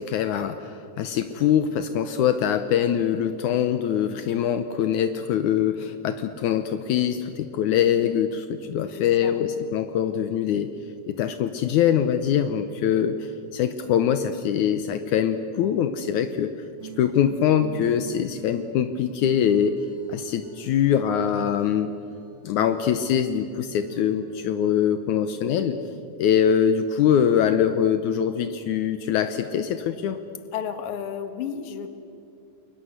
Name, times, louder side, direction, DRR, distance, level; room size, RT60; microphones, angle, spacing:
voice 1, 0.0-10.7 11.1-16.5 17.0-19.8 20.1-21.9 22.4-25.8 26.2-30.2, left 9 dB, 75° left, 9 dB, 2.3 m, -23 dB
voice 2, 9.0-9.3 30.5-31.9, left 8 dB, 55° left, 8 dB, 2.3 m, -32 dB
sound 1, 16.8-25.2, right 5 dB, 60° right, 3.6 m, -45 dB
29.5 x 22.5 x 8.0 m, 2.5 s
omnidirectional pair, 3.6 m